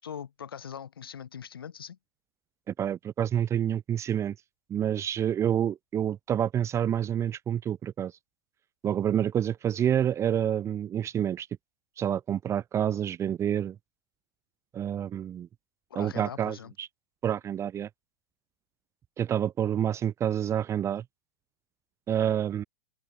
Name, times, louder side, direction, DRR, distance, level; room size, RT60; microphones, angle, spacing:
voice 1, 0.0-2.0 15.9-16.7, left 8 dB, 70° left, 5.8 m, -41 dB
voice 2, 2.7-4.3 4.7-8.1 8.8-11.5 12.0-13.8 14.7-15.5 16.0-16.9 17.2-17.9 19.2-21.0 22.1-22.6, right 9 dB, 20° right, 0.9 m, -28 dB
figure-of-eight pair, 95°, 13 cm